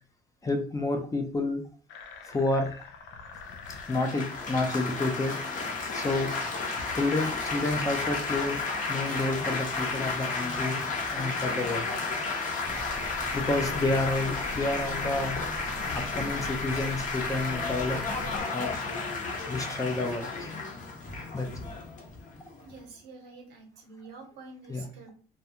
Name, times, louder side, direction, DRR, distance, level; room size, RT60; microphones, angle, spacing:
voice 1, 0.4-1.6 2.3-2.7 3.9-5.4 5.9-6.4 7.0-11.9 13.3-15.4 16.0-18.1 18.5-18.8 19.4-20.5 21.3-21.5 24.7-24.9, left 2 dB, 20° left, 4 dB, 0.5 m, -30 dB
sound 1, 1.9-19.4, left 6 dB, 85° left, 0.4 m, -46 dB
Laughter / Applause / Chatter, 3.7-22.8, left 4 dB, 50° left, 0.8 m, -33 dB
sound 2, 12.7-18.4, right 1 dB, 30° right, 0.7 m, -43 dB
voice 2, 22.6-25.1, right 3 dB, 85° right, 2 dB, 0.9 m, -47 dB
2.3 x 2.2 x 2.8 m, 0.40 s
cardioid pair, 110°, 17 cm